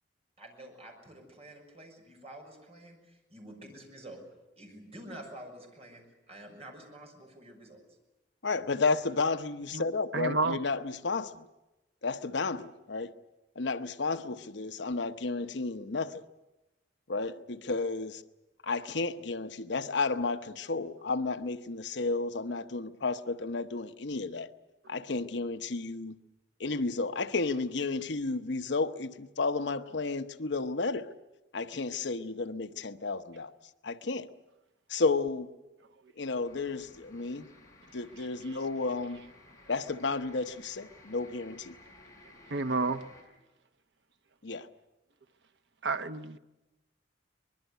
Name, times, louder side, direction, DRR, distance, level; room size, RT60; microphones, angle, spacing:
voice 1, 0.4-4.2 4.6-7.8, right 1 dB, 35° right, 6.5 m, -49 dB
voice 2, 8.4-11.5 12.0-13.1 13.6-16.2 17.1-18.2 18.6-24.5 24.9-26.2 26.6-31.1 31.5-33.5 33.8-34.3 34.9-35.5 36.2-37.5 37.9-39.2 39.7-41.8 44.4-44.7, left 3 dB, 70° left, 0.9 m, -32 dB
voice 3, 10.1-10.6 42.5-43.0 45.8-46.4, right 3 dB, 70° right, 1.0 m, -30 dB
sound 1, 36.4-43.2, left 1 dB, 20° left, 7.1 m, -56 dB
24.0 x 21.0 x 8.1 m
head